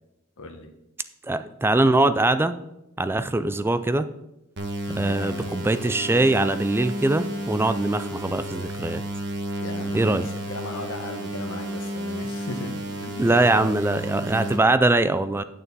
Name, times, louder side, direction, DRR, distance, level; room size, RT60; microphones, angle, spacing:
voice 1, 0.4-0.7 4.8-5.5 9.6-13.7, left 2 dB, 65° left, 4 dB, 1.0 m, -36 dB
voice 2, 1.2-2.5 3.0-4.1 5.0-9.0 9.9-10.3 13.2-15.4, right 2 dB, 10° right, 12 dB, 0.3 m, -22 dB
sound 1, 4.6-14.6, right 1 dB, 50° right, 1.4 m, -32 dB
9.0 x 6.7 x 4.1 m, 0.90 s
head